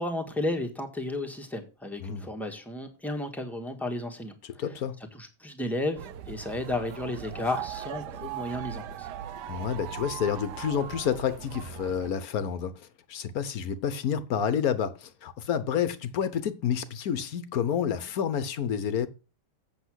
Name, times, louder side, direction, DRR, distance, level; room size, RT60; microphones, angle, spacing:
voice 1, 0.0-4.6 5.1-9.1, left 1 dB, ahead, 1.4 m, -33 dB
voice 2, 4.4-5.0 9.5-19.1, left 8 dB, 65° left, 1.2 m, -29 dB
sound 1, 6.0-12.1, right 10 dB, 80° right, 1.3 m, -39 dB
8.1 x 6.8 x 6.2 m
omnidirectional pair, 1.8 m